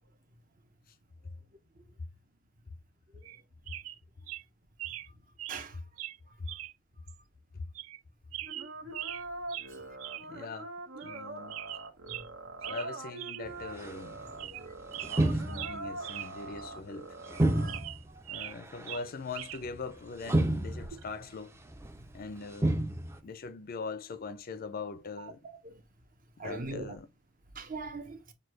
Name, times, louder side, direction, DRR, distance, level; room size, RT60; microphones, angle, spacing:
sound 1, 3.2-3.4 3.7-4.0 4.3-4.4 4.8-5.1 5.4-5.7 6.0-6.2 6.5-6.7 7.1-7.2 7.7-8.0 8.3-9.2 9.5-9.7 10.0-10.3 10.6-10.7 11.0-11.2 11.5-12.3 12.6-12.9 13.2-13.4 13.8-13.9 14.3-14.7 14.9-16.3 16.6-16.7 17.2-18.6 18.9-19.6 20.8-21.0, right 14 dB, 90° right, 0.3 m, -41 dB
sound 2, 8.5-17.8, right 2 dB, 70° right, 1.1 m, -43 dB
voice 1, 10.2-10.7 11.0-11.6 12.6-14.2 14.9-17.2 18.3-21.5 22.1-22.9 23.2-25.4 26.4-27.1, left 4 dB, 45° left, 0.4 m, -41 dB
sound 3, 13.4-14.6 15.0-16.2 16.5-16.7 17.3-18.1 18.4-18.9 19.6-19.8 20.2-21.1 21.7-22.1 22.5-23.2, right 1 dB, 15° right, 0.4 m, -30 dB
voice 2, 17.4-17.9 25.2-25.3 25.6-25.8 26.4-27.0 27.6-28.2, right 3 dB, 45° right, 0.8 m, -42 dB
6.3 x 2.3 x 3.1 m
head